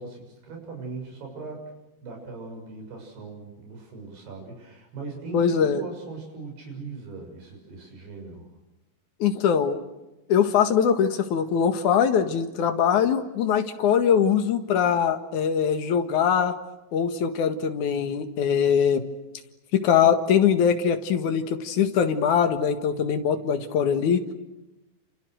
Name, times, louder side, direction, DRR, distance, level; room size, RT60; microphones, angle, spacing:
voice 1, 0.0-1.7 2.0-8.5, right 4 dB, 70° right, 2 dB, 8.8 m, -39 dB
voice 2, 5.3-5.8 9.2-9.8 10.3-16.5 16.9-19.1 19.7-24.2, left 7 dB, 55° left, 7 dB, 2.7 m, -22 dB
29.0 x 28.0 x 6.5 m, 1.0 s
omnidirectional pair, 4.7 m